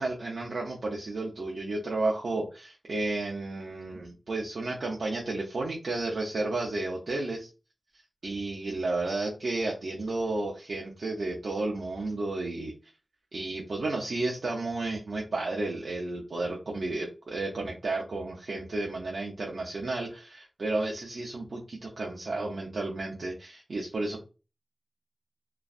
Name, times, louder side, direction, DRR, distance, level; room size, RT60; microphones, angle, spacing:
voice 1, 0.0-7.5 8.2-12.7 13.3-24.2, right 2 dB, 75° right, -2 dB, 0.6 m, -32 dB
3.1 x 2.5 x 2.4 m, 0.31 s
wide cardioid pair, 80°, 0 cm